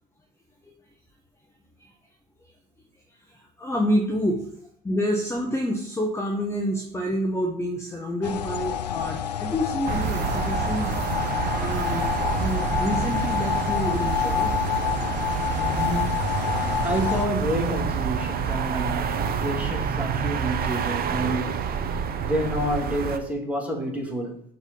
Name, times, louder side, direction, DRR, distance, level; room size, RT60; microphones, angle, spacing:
voice 1, 3.1-4.5 4.8-10.9 11.5-12.1 12.4-14.6, equal, 15° left, 1.4 m, -28 dB
sound 1, 8.2-17.3, left 9 dB, 85° left, 0.4 m, -28 dB
sound 2, 9.9-23.2, right 7 dB, 45° right, 0.9 m, -28 dB
voice 2, 15.5-16.4 16.8-21.7 22.2-24.4, equal, 5° right, 2.8 m, -29 dB
6.3 x 4.8 x 5.5 m
figure-of-eight pair, 55°, 21 cm